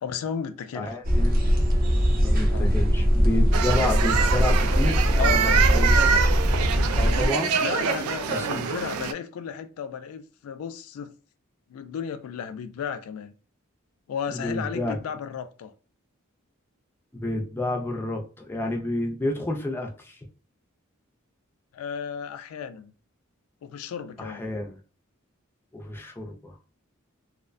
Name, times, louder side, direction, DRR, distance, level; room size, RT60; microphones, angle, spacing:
voice 1, 0.0-1.0 2.5-2.7 5.2-5.8 7.6-11.1 11.7-13.3 14.1-15.7 21.7-22.9 23.6-24.4, left 7 dB, 90° left, 0.3 m, -34 dB
voice 2, 0.7-1.4 2.2-6.0 7.0-7.6 8.3-8.7 14.3-15.0 17.1-20.2 24.2-24.8 25.7-26.6, left 2 dB, 10° left, 0.3 m, -30 dB
sound 1, 1.0-7.3, equal, 45° right, 0.6 m, -21 dB
sound 2, 3.5-9.1, right 7 dB, 90° right, 0.3 m, -25 dB
2.4 x 2.1 x 2.4 m
head